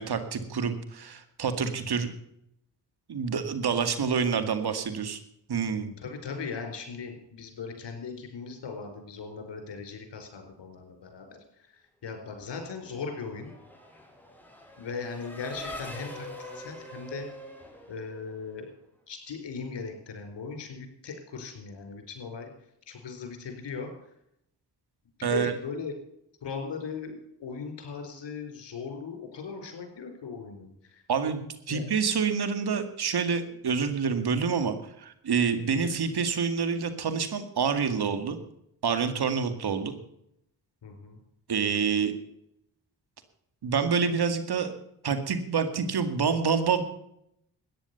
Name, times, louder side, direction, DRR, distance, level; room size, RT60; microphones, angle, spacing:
voice 1, 0.0-2.1 3.1-5.2 5.5-5.9 25.2-25.5 31.1-31.4 31.7-38.4 38.8-39.9 41.5-42.1 43.6-44.7 45.0-46.8, right 6 dB, 60° right, 10 dB, 2.1 m, -27 dB
voice 2, 6.0-11.4 12.0-13.5 14.8-17.3 17.9-18.7 19.1-22.5 22.9-23.9 25.2-25.9 26.4-30.7 31.7-31.8 40.8-41.2, left 5 dB, 70° left, 5 dB, 4.7 m, -38 dB
Race car auto racing / Accelerating revving vroom, 12.8-18.7, equal, 5° left, 5.5 m, -44 dB
14.0 x 10.0 x 6.9 m, 0.76 s
supercardioid pair, 50°, 43 cm